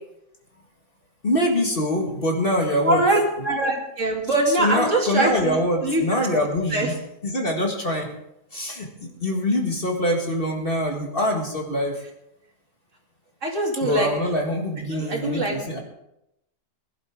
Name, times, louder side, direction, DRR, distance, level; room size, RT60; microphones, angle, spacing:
voice 1, 1.2-3.0 4.5-7.0 7.2-8.1 8.5-8.9 9.2-11.9 13.8-15.8, left 1 dB, 35° left, 1 dB, 2.0 m, -24 dB
voice 2, 2.9-5.6 5.8-6.0 6.7-6.9 13.4-14.1 14.9-15.6, right 1 dB, 50° right, 0 dB, 2.9 m, -22 dB
21.5 x 11.5 x 3.7 m, 0.83 s
omnidirectional pair, 1.7 m